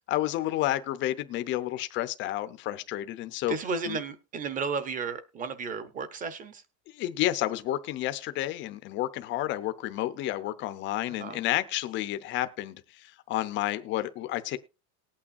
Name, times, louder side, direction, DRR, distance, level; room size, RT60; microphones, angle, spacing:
voice 1, 0.1-3.5 3.9-4.0 6.9-14.6, left 14 dB, 25° left, 0.6 m, -30 dB
voice 2, 3.5-6.6 11.1-11.4, right 4 dB, 15° right, 0.8 m, -33 dB
19.0 x 8.7 x 2.6 m
supercardioid pair, 165°, 49 cm